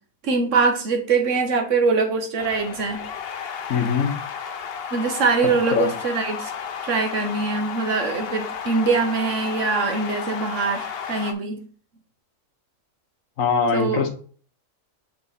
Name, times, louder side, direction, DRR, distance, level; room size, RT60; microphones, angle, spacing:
voice 1, 0.2-3.0 4.9-6.5 6.8-11.6 13.7-14.0, right 4 dB, 70° right, 5 dB, 1.4 m, -23 dB
sound 1, 2.4-11.3, left 7 dB, 55° left, 0.8 m, -33 dB
voice 2, 3.7-4.2 5.4-5.9 13.4-14.1, left 5 dB, 80° left, 6 dB, 1.3 m, -22 dB
7.1 x 3.5 x 4.1 m, 0.43 s
omnidirectional pair, 1.4 m